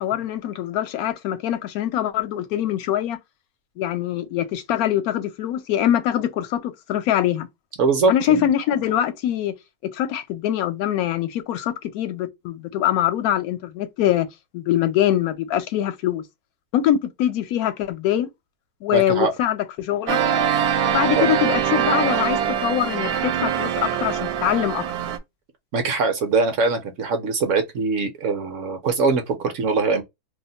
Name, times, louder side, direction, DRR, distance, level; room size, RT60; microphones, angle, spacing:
voice 1, 0.0-3.2 3.8-7.5 8.1-9.5 9.9-14.3 14.5-16.2 16.7-18.3 18.8-20.2 20.8-24.8, left 11 dB, 75° left, 1.0 m, -23 dB
voice 2, 7.8-8.4 18.9-19.3 21.2-21.3 25.7-30.0, right 4 dB, 65° right, 0.9 m, -22 dB
sound 1, 20.1-25.2, right 9 dB, 85° right, 1.1 m, -23 dB
2.7 x 2.1 x 3.9 m
omnidirectional pair, 1.6 m